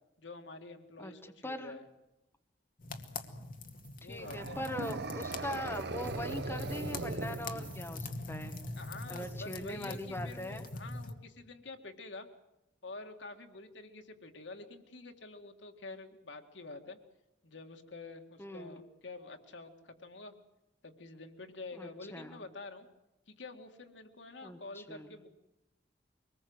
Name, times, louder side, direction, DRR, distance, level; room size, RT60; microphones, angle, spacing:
voice 1, 0.2-1.8 4.0-4.6 8.8-12.3 12.8-17.0 17.4-20.3 20.8-22.9 23.3-25.3, left 3 dB, 80° left, 6 dB, 2.1 m, -48 dB
voice 2, 1.4-1.7 4.0-8.6 9.1-10.6 18.4-18.8 21.7-22.4 24.4-25.1, left 1 dB, 15° left, 5 dB, 1.7 m, -41 dB
sound 1, 2.8-11.1, left 2 dB, 50° left, 2.0 m, -43 dB
sound 2, 3.4-4.0 4.3-11.0, right 2 dB, 5° right, 7.0 m, -59 dB
sound 3, 4.2-8.0, right 3 dB, 60° right, 0.7 m, -40 dB
24.0 x 20.0 x 8.0 m, 0.93 s
head